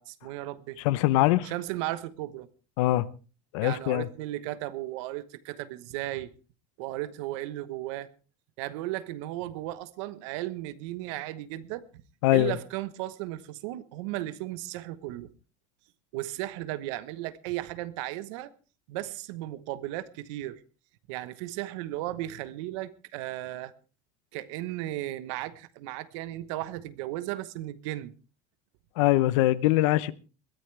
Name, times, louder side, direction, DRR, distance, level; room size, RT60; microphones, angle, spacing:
voice 1, 0.0-0.8 1.4-2.5 3.6-6.3 6.8-8.1 8.6-12.0 12.3-15.3 16.1-18.5 18.9-20.6 21.1-23.7 24.3-28.1, right 15 dB, 75° right, 1.1 m, -35 dB
voice 2, 0.8-1.5 2.8-3.1 3.5-4.1 12.2-12.6 29.0-30.1, left 16 dB, 80° left, 0.8 m, -22 dB
22.0 x 14.0 x 3.3 m
cardioid pair, 155°, 16 cm